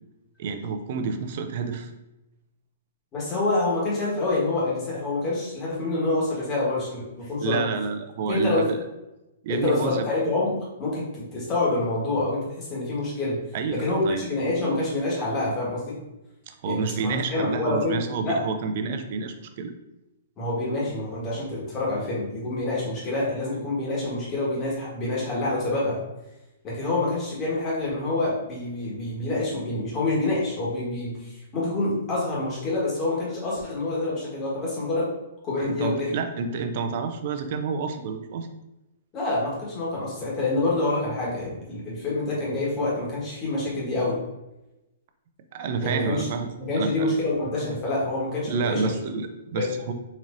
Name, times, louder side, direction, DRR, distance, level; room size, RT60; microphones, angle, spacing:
voice 1, 0.4-1.9 7.4-8.8 9.4-10.1 13.5-14.2 16.5-19.7 35.6-38.5 45.5-46.5 46.7-47.1 48.5-49.9, right 5 dB, 50° right, 7 dB, 0.4 m, -29 dB
voice 2, 3.1-7.6 8.3-8.7 9.5-13.4 13.7-16.0 16.7-18.4 20.4-26.0 26.6-35.1 35.4-36.1 39.1-44.2 45.8-46.3 46.6-48.8 49.5-49.7, left 2 dB, 25° left, -5 dB, 1.5 m, -27 dB
4.1 x 3.0 x 2.5 m, 0.95 s
hypercardioid pair, 150°, 0 cm